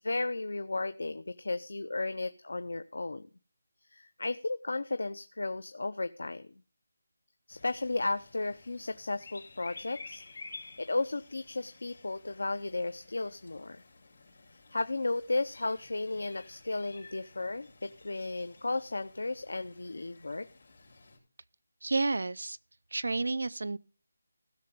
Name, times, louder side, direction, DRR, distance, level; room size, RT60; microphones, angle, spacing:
voice 1, 0.0-3.3 3.9-6.5 7.5-10.2 10.8-13.8 14.7-20.5, left 2 dB, 80° left, 0.6 m, -34 dB
sound 1, 7.5-21.2, left 3 dB, 50° left, 5.9 m, -53 dB
voice 2, 21.8-22.6 22.9-23.8, right 3 dB, 65° right, 0.5 m, -30 dB
15.5 x 6.8 x 5.3 m
figure-of-eight pair, 180°, 0 cm